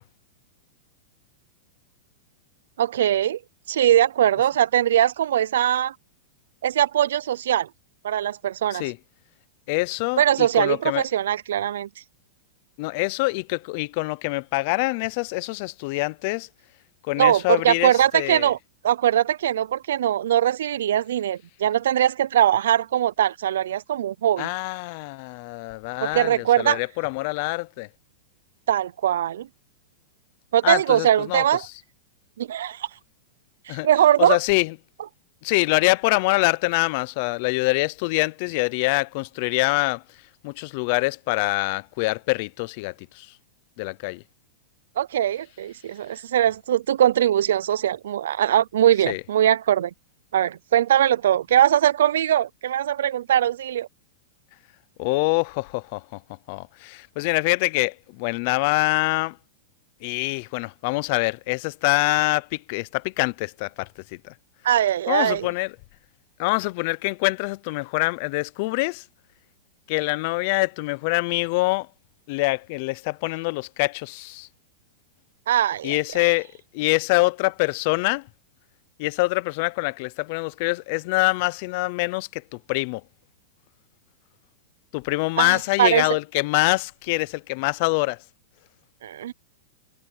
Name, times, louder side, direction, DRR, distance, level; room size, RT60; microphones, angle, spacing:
voice 1, 2.8-3.4 3.7-5.9 6.6-7.7 8.0-8.9 10.2-11.9 17.2-18.6 18.8-24.5 26.0-26.8 28.7-29.5 30.5-31.7 32.4-32.9 33.7-34.4 45.0-49.9 50.3-53.9 64.6-65.5 75.5-75.9 85.4-86.1 89.0-89.3, right 11 dB, 70° right, 0.4 m, -21 dB
voice 2, 9.7-11.0 12.8-16.5 17.1-18.5 24.4-27.9 30.6-31.7 33.7-33.9 34.2-34.7 35.4-40.0 40.4-43.3 43.8-44.2 49.1-49.2 55.0-56.2 56.5-59.4 60.0-64.3 65.1-65.7 66.4-69.0 69.9-71.9 72.3-74.5 75.8-76.5 76.7-78.3 79.0-83.0 84.9-88.2, left 25 dB, 35° left, 0.5 m, -25 dB
supercardioid pair, 180°, 0 cm